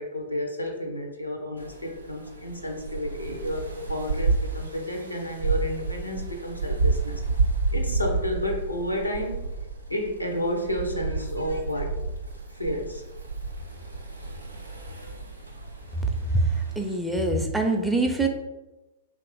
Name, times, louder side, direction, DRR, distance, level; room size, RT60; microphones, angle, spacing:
voice 1, 0.0-7.2 7.7-9.4 9.9-12.0 12.5-13.0, left 1 dB, 90° left, 2 dB, 0.5 m, -31 dB
sound 1, 1.6-17.0, right 4 dB, 80° right, 0.5 m, -31 dB
voice 2, 16.8-18.3, right 2 dB, 5° right, 3 dB, 0.4 m, -24 dB
2.9 x 2.5 x 3.6 m, 1.0 s
figure-of-eight pair, 100°, 0 cm